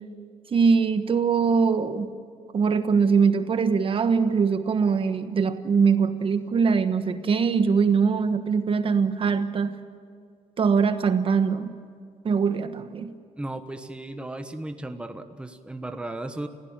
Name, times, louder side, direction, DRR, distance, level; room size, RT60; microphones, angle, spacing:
voice 1, 0.5-2.1 2.5-9.8 10.6-11.7 12.2-13.1, right 5 dB, 45° right, 9 dB, 1.3 m, -22 dB
voice 2, 13.4-16.5, right 2 dB, 10° right, 8 dB, 1.2 m, -35 dB
29.5 x 16.5 x 8.8 m, 2.1 s
cardioid pair, 125°, 13 cm